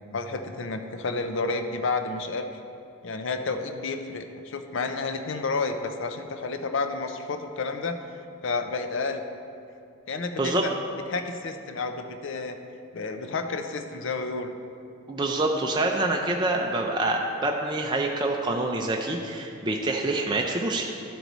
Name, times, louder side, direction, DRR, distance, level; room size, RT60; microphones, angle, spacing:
voice 1, 0.1-2.6 3.0-8.0 8.4-9.2 10.1-10.7 11.1-12.6 12.9-14.5, left 3 dB, 55° left, 6 dB, 0.5 m, -30 dB
voice 2, 15.1-20.9, right 2 dB, 20° right, 0 dB, 0.4 m, -26 dB
12.5 x 4.6 x 4.0 m, 2.5 s
head